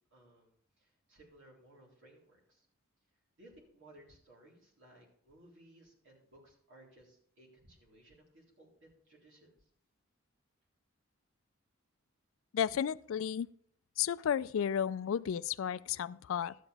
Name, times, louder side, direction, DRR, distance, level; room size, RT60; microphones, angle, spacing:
voice 1, 0.1-2.7 3.4-9.7, right 1 dB, 60° right, 3.9 m, -60 dB
voice 2, 12.5-13.5 14.0-16.6, left 8 dB, 65° left, 0.3 m, -33 dB
12.5 x 9.2 x 3.4 m
head